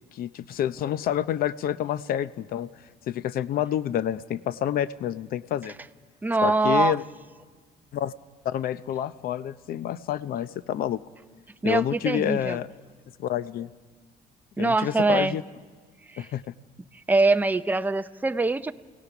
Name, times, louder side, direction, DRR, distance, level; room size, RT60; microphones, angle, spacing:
voice 1, 0.1-2.7 3.1-5.7 6.4-7.0 7.9-8.1 8.4-11.0 11.6-12.7 13.2-13.7 14.6-15.4 16.2-16.4, left 10 dB, 60° left, 16 dB, 0.6 m, -28 dB
voice 2, 6.2-6.9 11.6-12.6 14.6-15.4 16.1-16.3 17.1-18.7, right 3 dB, 10° right, 10 dB, 0.5 m, -23 dB
28.5 x 17.5 x 5.9 m, 1.5 s
cardioid pair, 110°, 17 cm